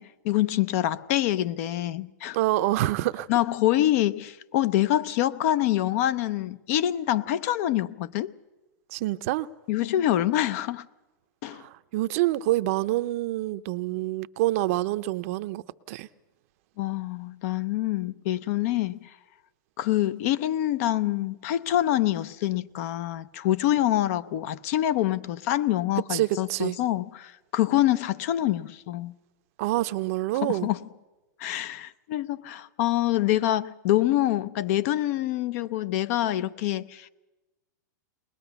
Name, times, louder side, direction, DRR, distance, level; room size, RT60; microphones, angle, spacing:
voice 1, 0.0-2.4 3.3-8.3 9.7-10.9 11.4-11.6 16.8-19.1 19.8-29.1 30.4-30.8 31.4-37.1, left 13 dB, 50° left, 0.7 m, -26 dB
voice 2, 2.3-3.3 8.9-9.5 11.5-15.6 15.9-16.1 26.1-26.8 29.6-30.7, right 16 dB, 50° right, 0.6 m, -27 dB
21.0 x 20.5 x 7.0 m
hypercardioid pair, 140°, 10 cm